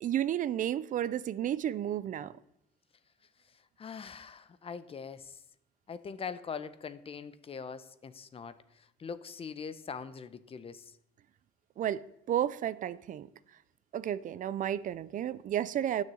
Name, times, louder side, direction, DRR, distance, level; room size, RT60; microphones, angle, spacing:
voice 1, 0.0-2.3 11.8-13.3 13.9-16.0, right 11 dB, 50° right, 0.5 m, -32 dB
voice 2, 3.4-5.4 5.9-11.0, left 6 dB, 35° left, 0.9 m, -43 dB
12.0 x 6.5 x 8.5 m
cardioid pair, 110°, 17 cm